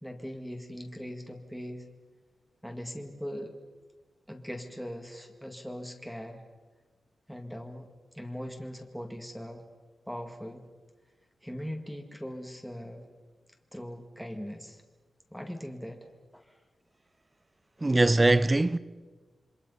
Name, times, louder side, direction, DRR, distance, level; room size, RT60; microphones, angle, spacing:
voice 1, 0.0-1.8 2.6-3.5 4.3-6.4 7.3-7.9 8.1-9.6 10.1-10.6 11.4-13.1 13.7-14.8 15.3-16.1 16.3-16.5, equal, ahead, 1.9 m, -40 dB
voice 2, 17.8-18.8, right 2 dB, 20° right, 0.6 m, -22 dB
27.5 x 24.0 x 5.5 m
wide cardioid pair, 140°, 0 cm